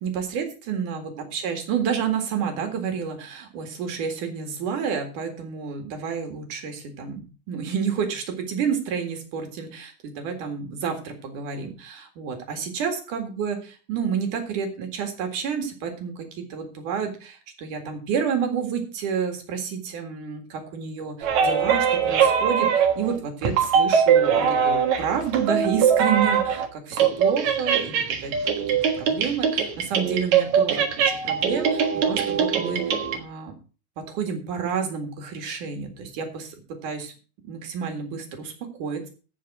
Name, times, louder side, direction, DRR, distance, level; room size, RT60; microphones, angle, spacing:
voice 1, 0.0-28.3 28.9-33.5 34.1-36.5 36.8-37.1 37.4-39.1, right 7 dB, 55° right, 5 dB, 2.6 m, -30 dB
Children's Toy Musical Samples, 21.2-23.2 23.4-26.7 26.9-33.2, right 7 dB, 90° right, 1.6 m, -22 dB
15.5 x 5.4 x 6.0 m, 0.36 s
omnidirectional pair, 5.9 m